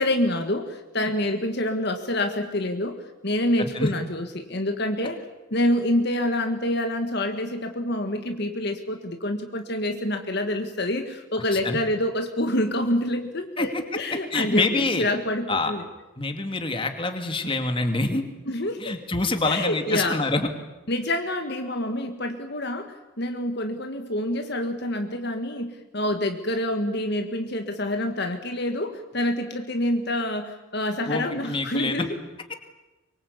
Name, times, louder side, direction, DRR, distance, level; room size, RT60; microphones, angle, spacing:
voice 1, 0.0-5.2 5.5-15.9 18.5-19.0 19.4-20.2 20.9-32.1, left 1 dB, 50° left, 6 dB, 1.7 m, -27 dB
voice 2, 3.6-3.9 11.5-11.8 13.6-13.7 14.3-15.0 15.5-15.7 16.2-18.2 18.8-20.5 31.1-32.0, left 2 dB, 25° left, 6 dB, 2.4 m, -26 dB
24.0 x 23.5 x 8.4 m, 1.0 s
head